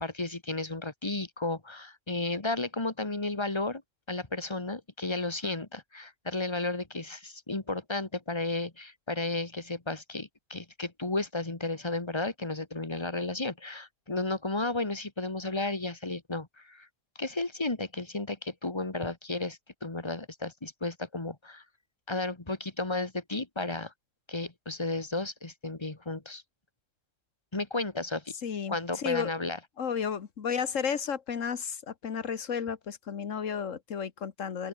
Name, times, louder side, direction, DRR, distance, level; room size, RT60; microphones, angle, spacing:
voice 1, 0.0-3.8 4.1-16.9 17.2-21.6 22.1-23.9 24.3-26.4 27.5-28.3 28.7-29.6, left 2 dB, 20° left, 2.0 m, -33 dB
voice 2, 28.4-29.3 29.8-34.7, left 7 dB, 75° left, 1.8 m, -33 dB
open air
omnidirectional pair, 1.4 m